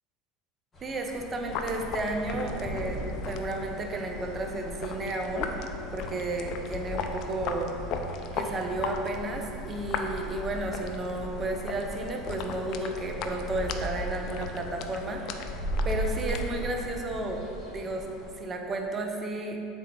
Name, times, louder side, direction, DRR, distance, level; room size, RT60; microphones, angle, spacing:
sound 1, 0.7-18.3, right 1 dB, 25° left, 1.2 m, -39 dB
voice 1, 0.8-5.7 5.9-7.7 8.3-15.5 15.9-18.1 18.4-19.6, right 2 dB, 30° right, 2 dB, 0.6 m, -33 dB
sound 2, 1.5-16.9, left 4 dB, 55° left, 0.3 m, -37 dB
3.8 x 3.4 x 4.0 m, 2.6 s
hypercardioid pair, 80°, 0 cm